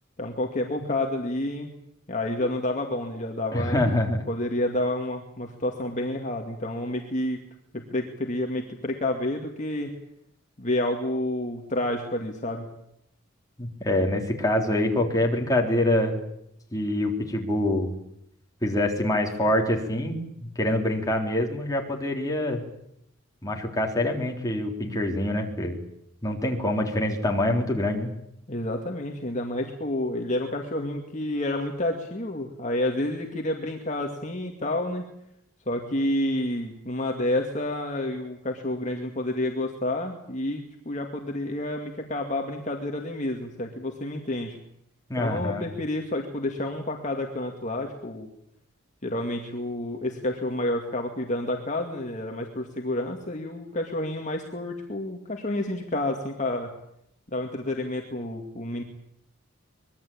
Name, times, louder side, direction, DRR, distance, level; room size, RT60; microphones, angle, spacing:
voice 1, 0.2-1.8 2.1-3.8 4.3-7.4 7.7-9.9 10.6-12.7 28.5-35.0 35.7-44.6 45.2-48.3 49.0-56.7 57.3-58.8, left 1 dB, 35° left, 2 dB, 2.2 m, -29 dB
voice 2, 3.5-4.2 13.6-16.2 16.7-17.9 18.6-22.6 23.4-25.8 26.2-28.1 45.1-45.7, left 1 dB, 15° left, 1 dB, 3.9 m, -25 dB
24.0 x 21.5 x 8.8 m, 0.75 s
head